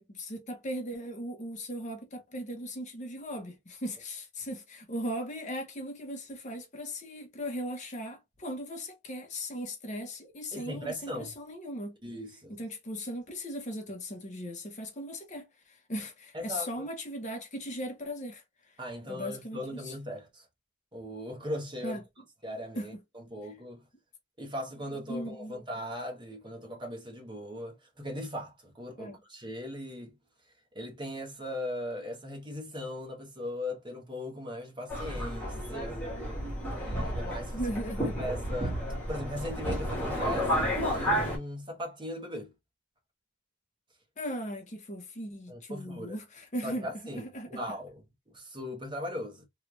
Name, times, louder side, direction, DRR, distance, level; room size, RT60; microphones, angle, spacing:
voice 1, 0.0-12.0 12.5-18.8 19.1-19.9 21.8-22.0 22.8-22.9 25.1-25.5 29.0-29.2 37.5-38.3 44.2-46.9 47.1-47.6, equal, 35° left, 0.8 m, -38 dB
voice 2, 10.5-11.3 12.0-12.6 16.3-16.9 18.8-20.5 20.9-22.0 22.4-23.8 24.4-30.2 30.7-36.0 36.6-37.6 38.2-38.8 39.1-42.5 45.5-46.2 46.6-47.2 47.5-48.0 48.3-49.4, left 1 dB, 20° right, 0.9 m, -39 dB
Subway metro underground, 34.9-41.4, equal, 5° left, 1.2 m, -31 dB
3.2 x 2.3 x 3.0 m
head